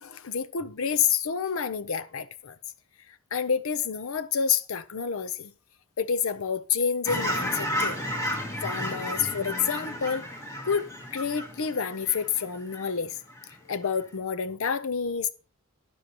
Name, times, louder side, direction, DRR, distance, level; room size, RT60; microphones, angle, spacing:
voice 1, 0.0-2.6 3.3-5.5 6.0-8.0 8.6-10.2 10.6-13.2 13.7-15.3, left 6 dB, 65° left, 0.6 m, -28 dB
Fowl / Chirp tweet, 7.1-12.9 13.3-13.5, equal, 15° left, 2.1 m, -32 dB
11.0 x 10.0 x 2.9 m
head